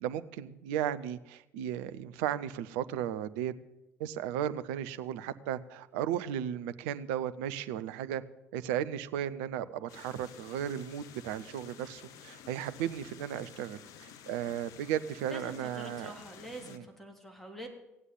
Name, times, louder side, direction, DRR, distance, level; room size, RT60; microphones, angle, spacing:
voice 1, 0.0-3.5 4.0-8.2 8.5-16.1 16.6-16.8, right 10 dB, 60° right, 12 dB, 0.7 m, -35 dB
sound 1, 9.9-16.8, left 9 dB, 55° left, 0.9 m, -52 dB
voice 2, 15.3-17.7, right 1 dB, 5° left, 2 dB, 3.5 m, -45 dB
17.0 x 8.2 x 9.3 m, 0.96 s
figure-of-eight pair, 55°, 7 cm